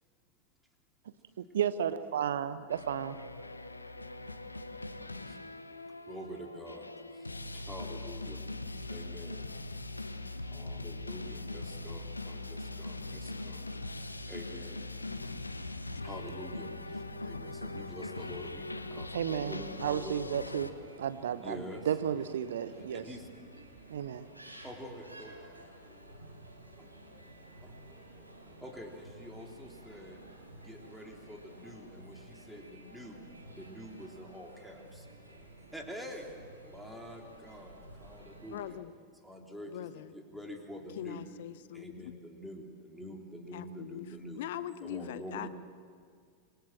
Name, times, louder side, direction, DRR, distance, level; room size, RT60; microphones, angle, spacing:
voice 1, 1.4-3.2 19.1-20.7 21.0-21.6 21.9-23.0 23.9-24.3, right 9 dB, 60° right, 13 dB, 0.9 m, -33 dB
sound 1, 2.7-20.7, left 2 dB, 80° left, 1.1 m, -41 dB
voice 2, 6.1-8.4 8.8-9.4 10.4-13.9 14.3-14.8 16.0-20.4 21.4-21.9 22.9-23.3 24.6-25.5 26.8-26.9 27.6-27.8 28.6-30.2 30.6-33.2 33.5-35.1 35.6-36.3 36.6-38.8 39.2-41.3 41.7-44.4 44.8-45.5, equal, ahead, 0 dB, 3.7 m, -46 dB
sound 2, 19.3-38.7, right 1 dB, 90° right, 4.1 m, -53 dB
voice 3, 38.5-38.9 39.7-40.1 41.0-42.1 43.5-44.1 44.4-45.5, left 12 dB, 55° left, 15 dB, 0.7 m, -41 dB
26.5 x 22.5 x 7.6 m, 2.1 s
figure-of-eight pair, 90°, 0 cm